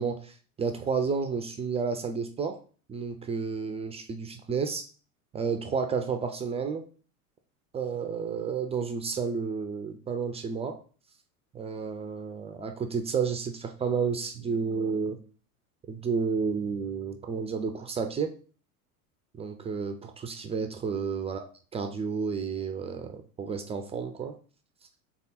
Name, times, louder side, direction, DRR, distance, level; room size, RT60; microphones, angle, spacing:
voice 1, 0.0-2.6 2.9-4.8 5.3-6.8 7.7-10.8 11.5-15.2 15.9-18.3 19.3-21.4 21.7-24.3, right 5 dB, 15° right, 7 dB, 0.3 m, -31 dB
3.7 x 3.5 x 4.1 m, 0.40 s
hypercardioid pair, 80°, 44 cm